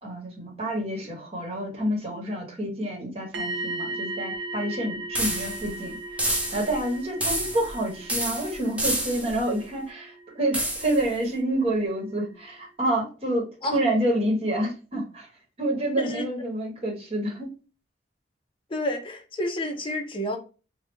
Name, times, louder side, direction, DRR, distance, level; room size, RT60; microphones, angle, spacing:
voice 1, 0.0-13.5 13.7-15.3 15.6-17.6, right 1 dB, 35° right, 1.2 m, -28 dB
sound 1, 3.3-11.2 11.5-11.7, right 2 dB, 70° right, 0.7 m, -37 dB
sound 2, 5.1-5.7 6.2-6.8 7.2-7.8 8.1-9.4 10.5-11.0, right 1 dB, 10° right, 0.7 m, -29 dB
voice 2, 18.7-20.4, left 1 dB, 30° left, 0.6 m, -29 dB
3.5 x 2.2 x 3.2 m
head